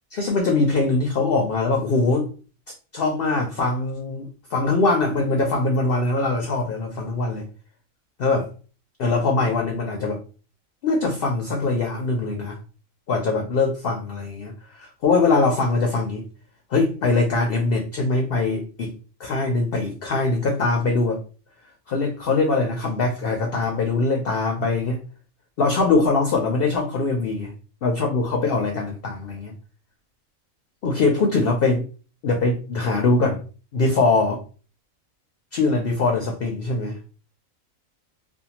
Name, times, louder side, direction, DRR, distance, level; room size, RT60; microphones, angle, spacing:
voice 1, 0.1-2.3 2.9-7.4 8.2-8.5 9.0-10.2 10.8-12.6 13.1-16.2 16.7-18.9 19.2-21.2 21.9-25.0 25.6-27.5 27.8-29.5 30.8-31.8 32.2-33.4 33.7-34.4 35.5-37.0, left 3 dB, 65° left, 0.6 m, -22 dB
2.6 x 2.2 x 2.8 m
omnidirectional pair, 1.4 m